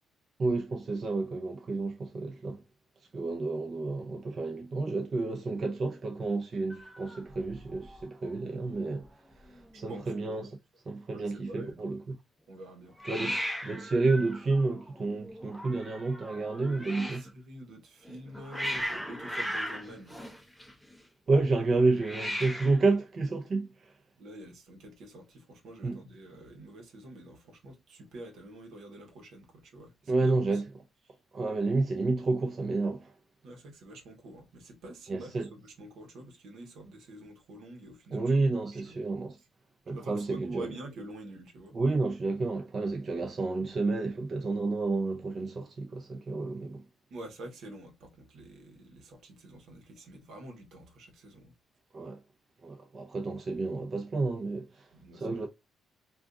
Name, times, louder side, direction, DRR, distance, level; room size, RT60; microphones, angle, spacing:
voice 1, 0.4-2.6 3.1-9.1 9.5-10.6 10.9-12.2 13.0-17.2 21.3-23.9 25.8-26.0 30.1-30.8 31.3-33.1 35.1-35.5 38.1-39.4 39.9-40.7 41.7-46.8 51.9-52.2 52.6-54.9 55.1-55.5, right 3 dB, 45° right, 0.6 m, -30 dB
Hiss, 6.7-8.0 8.3-8.8 9.0-9.1 9.3-10.0 13.0-17.3 18.0-21.0 21.9-22.9, equal, 5° left, 0.7 m, -38 dB
voice 2, 9.9-10.3 11.1-11.8 12.5-13.0 16.5-20.2 24.2-29.9 30.2-30.6 33.4-38.2 38.7-39.0 39.9-41.8 47.1-51.5 54.9-55.3, right 1 dB, 75° right, 1.0 m, -47 dB
2.5 x 2.4 x 3.6 m
cardioid pair, 90°, 0 cm